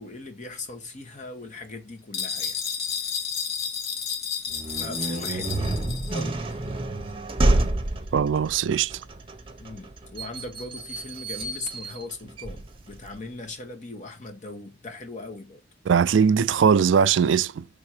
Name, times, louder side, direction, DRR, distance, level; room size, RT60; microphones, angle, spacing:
voice 1, 0.0-2.6 4.6-5.6 6.1-6.5 9.6-15.6, left 3 dB, 40° left, 1.4 m, -39 dB
sound 1, 2.1-6.3, left 6 dB, 60° left, 1.6 m, -31 dB
sound 2, 4.5-13.2, right 2 dB, 30° right, 0.8 m, -29 dB
voice 2, 8.1-8.9 15.9-17.7, right 7 dB, 75° right, 0.4 m, -20 dB
5.6 x 3.5 x 4.8 m
head